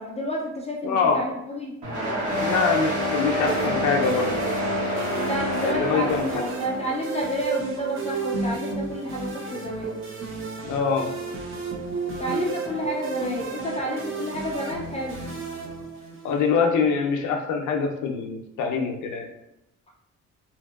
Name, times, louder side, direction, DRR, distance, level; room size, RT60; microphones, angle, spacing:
voice 1, 0.0-1.7 5.1-9.9 12.2-15.2, equal, 20° left, -2 dB, 0.4 m, -30 dB
voice 2, 0.8-1.2 2.4-4.4 5.6-6.4 10.6-11.1 16.2-19.3, left 5 dB, 80° left, 2 dB, 0.6 m, -24 dB
sound 1, 1.8-6.9, left 1 dB, 75° right, 1.3 m, -27 dB
sound 2, 3.5-16.5, right 4 dB, 40° right, 0.7 m, -33 dB
2.9 x 2.6 x 2.3 m, 0.87 s
cardioid pair, 90°, 30 cm